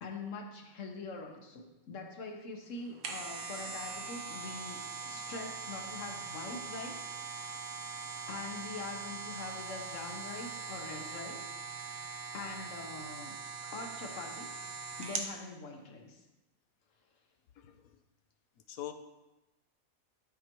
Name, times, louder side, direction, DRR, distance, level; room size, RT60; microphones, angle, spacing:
voice 1, 0.0-7.0 8.3-11.4 12.0-13.4 13.6-14.5 14.8-16.2, left 3 dB, 65° left, 3 dB, 1.3 m, -44 dB
sound 1, 2.8-15.3 15.8-15.9, right 5 dB, 80° right, 1.3 m, -42 dB
voice 2, 17.5-18.0 18.7-18.9, left 12 dB, 80° left, 7 dB, 1.1 m, -43 dB
12.0 x 4.8 x 3.0 m, 1.0 s
omnidirectional pair, 1.5 m